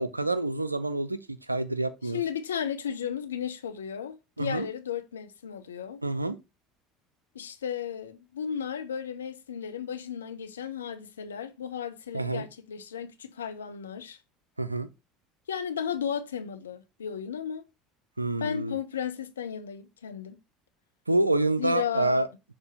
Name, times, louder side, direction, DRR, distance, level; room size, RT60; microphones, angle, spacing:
voice 1, 0.0-2.2 4.4-4.7 6.0-6.4 12.1-12.4 14.6-14.9 18.2-18.8 21.1-22.3, right 2 dB, 90° right, 0.4 m, -27 dB
voice 2, 2.1-6.0 7.3-14.2 15.5-17.6 18.4-20.4 21.6-22.2, left 8 dB, 80° left, 0.6 m, -34 dB
6.7 x 2.9 x 5.5 m
figure-of-eight pair, 65°, 0 cm